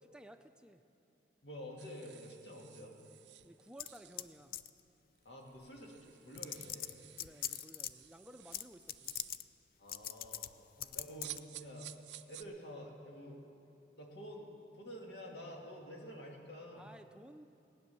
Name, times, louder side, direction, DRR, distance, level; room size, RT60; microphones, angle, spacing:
voice 1, 0.0-0.8 3.4-4.5 7.2-9.2 10.8-11.1 16.8-17.5, right 1 dB, 5° right, 7 dB, 0.5 m, -56 dB
voice 2, 1.4-3.0 5.2-7.0 9.8-10.5 10.9-11.9 12.3-13.4 14.0-16.8, equal, 70° left, 0 dB, 2.2 m, -49 dB
sound 1, 1.8-4.5 5.1-5.2 5.5-9.4 11.2-12.4, right 15 dB, 80° right, 0.5 m, -54 dB
sound 2, 3.8-4.3 4.5-4.8 5.8-5.9 6.4-7.9 8.5-8.6 8.9-9.4 9.9-10.5 10.8-11.4, left 12 dB, 55° left, 0.4 m, -41 dB
18.0 x 9.7 x 7.0 m, 2.7 s
head